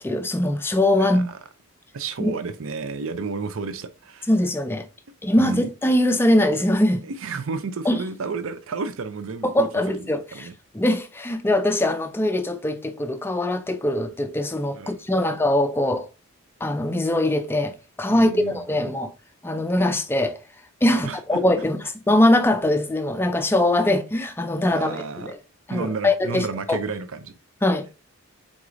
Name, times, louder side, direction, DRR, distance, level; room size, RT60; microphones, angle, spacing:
voice 1, 0.0-1.3 2.2-2.3 4.3-4.9 5.2-7.1 7.9-8.0 9.4-10.5 10.7-16.1 16.6-19.1 19.4-20.4 20.8-21.8 22.1-25.4 25.7-26.8 27.6-27.9, left 1 dB, 10° left, 0.3 m, -22 dB
voice 2, 1.0-1.4 1.9-4.3 5.4-5.7 7.0-9.7 10.0-10.5 14.7-15.0 18.1-18.5 20.9-21.4 24.7-25.3 25.7-27.3, right 4 dB, 65° right, 0.5 m, -32 dB
4.7 x 3.8 x 2.5 m
head